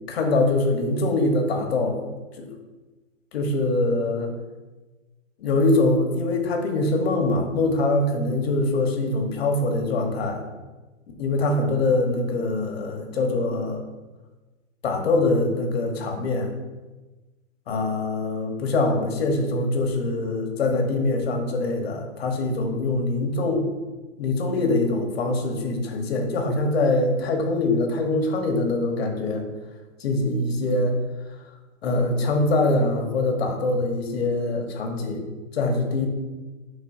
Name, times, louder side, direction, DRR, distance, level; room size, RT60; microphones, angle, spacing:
voice 1, 0.1-2.1 2.4-2.5 3.3-4.3 5.4-10.4 11.2-13.8 14.8-16.5 17.7-23.7 24.2-29.4 30.0-31.0 31.8-35.2 35.5-36.1, left 2 dB, 50° left, 3 dB, 1.3 m, -23 dB
10.0 x 4.0 x 2.7 m, 1.2 s
hypercardioid pair, 155°, 40 cm